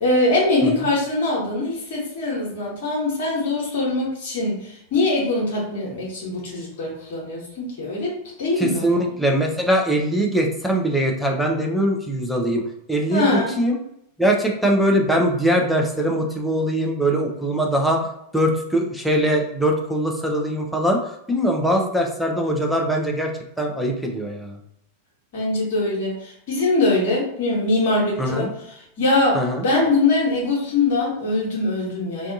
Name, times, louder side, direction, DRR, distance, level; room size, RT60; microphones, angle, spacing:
voice 1, 0.0-8.1 8.4-8.9 13.1-13.5 25.3-28.5 29.0-29.4 29.6-32.3, left 2 dB, 50° left, -3 dB, 0.9 m, -22 dB
voice 2, 8.6-12.6 12.9-13.8 14.2-18.1 18.3-23.3 23.6-24.6 28.2-28.5 29.3-29.6, right 1 dB, ahead, 0 dB, 0.5 m, -22 dB
2.6 x 2.3 x 2.6 m, 0.77 s
figure-of-eight pair, 90°, 0 cm